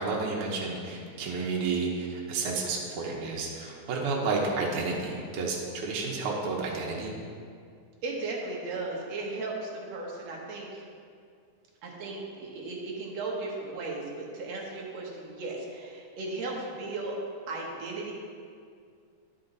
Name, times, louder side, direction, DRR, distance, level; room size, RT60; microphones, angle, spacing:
voice 1, 0.0-7.1, right 4 dB, 80° right, -3 dB, 2.4 m, -31 dB
voice 2, 8.0-10.8 11.8-17.2 17.5-18.1, right 3 dB, 65° right, -2 dB, 2.1 m, -36 dB
10.5 x 5.7 x 3.9 m, 2.2 s
omnidirectional pair, 3.5 m